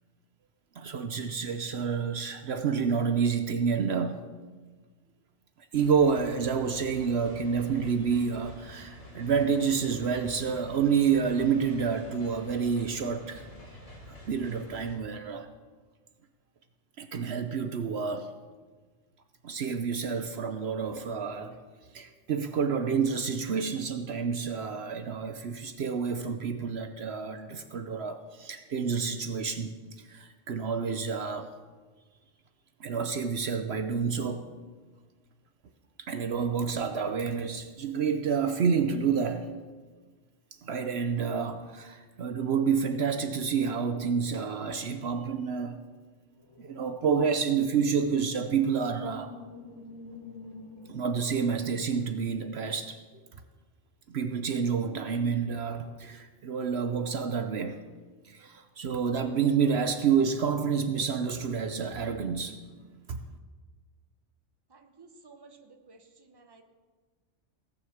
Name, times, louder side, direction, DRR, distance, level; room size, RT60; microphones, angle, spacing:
voice 1, 0.8-4.2 5.7-13.4 14.1-15.5 17.0-18.3 19.4-21.6 21.9-31.5 32.8-34.5 36.0-39.5 40.6-45.8 46.6-49.3 50.9-53.0 54.1-57.8 58.2-62.8 63.1-63.2, right 6 dB, 65° right, 8 dB, 1.0 m, -29 dB
sound 1, 5.7-15.0, left 1 dB, 30° left, 2.4 m, -48 dB
sound 2, 46.3-52.5, left 3 dB, 85° left, 2.2 m, -48 dB
voice 2, 64.7-66.6, right 3 dB, 20° right, 5 dB, 1.0 m, -55 dB
17.5 x 6.6 x 7.1 m, 1.4 s
omnidirectional pair, 1.2 m